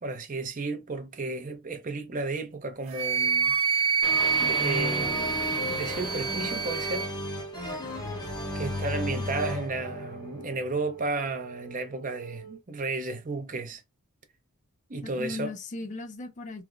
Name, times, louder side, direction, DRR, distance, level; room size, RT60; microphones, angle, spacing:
voice 1, 0.0-3.8 4.4-7.1 8.5-13.8 14.9-15.5, right 3 dB, 35° right, 0.6 m, -33 dB
Wind instrument woodwind instrument, 2.9-7.1, right 5 dB, 65° right, 0.8 m, -27 dB
sound 1, 4.0-11.0, left 1 dB, 20° left, 0.9 m, -34 dB
Wind instrument woodwind instrument 2, 4.2-12.6, right 6 dB, 85° left, 1.5 m, -46 dB
voice 2, 8.9-9.3 15.0-16.6, left 2 dB, 35° left, 0.5 m, -37 dB
3.2 x 2.0 x 2.4 m
head